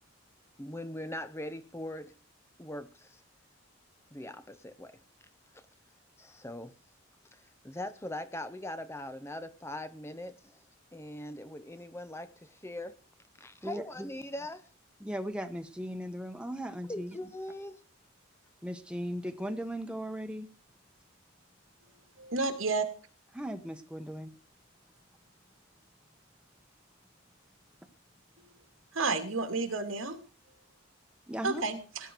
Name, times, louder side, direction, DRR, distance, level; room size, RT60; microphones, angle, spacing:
voice 1, 0.6-2.2 2.6-3.2 4.1-5.0 5.5-5.7 6.2-6.7 7.3-7.4 7.6-10.6 10.9-13.0 13.4-14.7 16.9-17.8, left 1 dB, 15° left, 11 dB, 0.9 m, -41 dB
voice 2, 13.6-14.1 15.0-17.2 18.6-20.5 23.3-24.3 31.3-31.6, equal, 5° right, 6 dB, 1.3 m, -37 dB
voice 3, 22.2-22.8 28.9-30.2 31.4-31.8, right 3 dB, 85° right, 6 dB, 2.7 m, -30 dB
18.0 x 11.0 x 4.7 m, 0.36 s
head